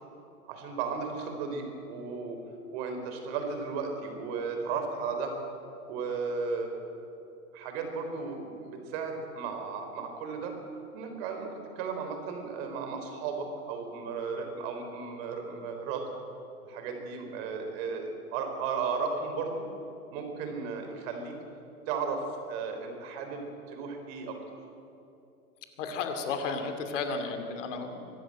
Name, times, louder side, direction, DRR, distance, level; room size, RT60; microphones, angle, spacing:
voice 1, 0.4-2.4 2.7-5.3 5.9-6.7 7.5-10.5 10.9-16.0 16.6-19.7 20.1-21.4 21.9-24.4, right 5 dB, 40° right, 4 dB, 4.3 m, -35 dB
voice 2, 25.8-28.1, left 4 dB, 50° left, 6 dB, 2.8 m, -33 dB
24.0 x 13.5 x 8.8 m, 2.8 s
hypercardioid pair, 120°, 46 cm